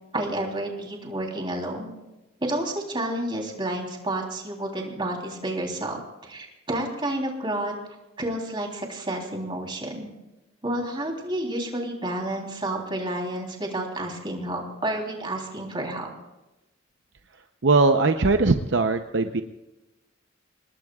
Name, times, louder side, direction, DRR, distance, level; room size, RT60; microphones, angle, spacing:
voice 1, 0.1-1.9 2.4-7.7 8.2-10.1 10.6-16.1, right 1 dB, 25° right, 0 dB, 3.5 m, -30 dB
voice 2, 17.6-19.4, right 3 dB, 65° right, 6 dB, 0.8 m, -20 dB
27.0 x 19.5 x 2.4 m, 1.0 s
head